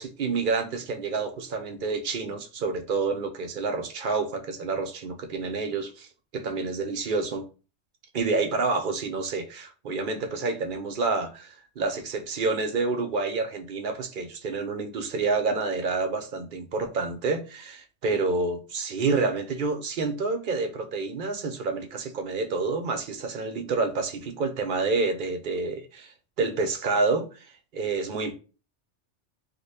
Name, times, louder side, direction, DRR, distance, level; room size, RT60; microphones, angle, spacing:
voice 1, 0.0-6.1 6.3-7.4 8.1-27.5 27.7-28.3, right 4 dB, 55° right, 0.6 m, -28 dB
2.7 x 2.2 x 4.0 m
omnidirectional pair, 1.2 m